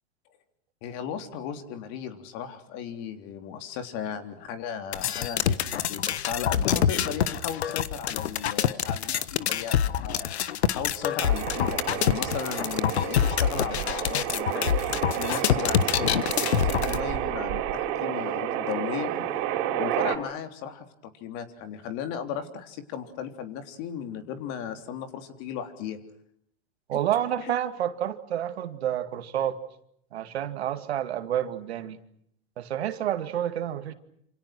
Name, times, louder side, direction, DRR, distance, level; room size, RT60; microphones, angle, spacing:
voice 1, 0.8-5.6 5.9-10.3 10.7-19.3 19.8-20.9 21.2-26.0 27.4-27.5, left 8 dB, 50° left, 8 dB, 3.6 m, -36 dB
sound 1, 4.9-17.0, left 9 dB, 80° left, 1.4 m, -26 dB
sound 2, 11.2-20.2, right 11 dB, 50° right, 4.1 m, -30 dB
voice 2, 26.9-29.6 30.1-32.0 32.6-33.9, right 11 dB, 75° right, 9 dB, 2.4 m, -29 dB
28.0 x 27.0 x 6.2 m, 0.71 s
hypercardioid pair, 115°, 32 cm